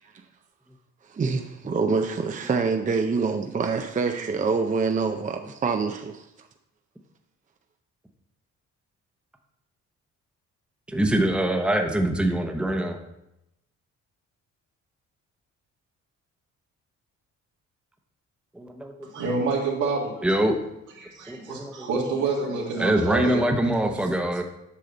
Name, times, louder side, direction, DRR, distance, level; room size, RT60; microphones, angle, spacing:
voice 1, 1.1-6.2, right 4 dB, 25° right, 5 dB, 0.6 m, -26 dB
voice 2, 10.9-13.0 18.5-18.9 20.2-20.6 21.3-21.9 22.4-24.4, right 1 dB, 5° right, 3 dB, 0.9 m, -24 dB
voice 3, 19.1-20.2 21.0-23.4, right 4 dB, 80° right, -2 dB, 2.0 m, -27 dB
8.4 x 5.6 x 3.9 m, 0.85 s
cardioid pair, 90°, 30 cm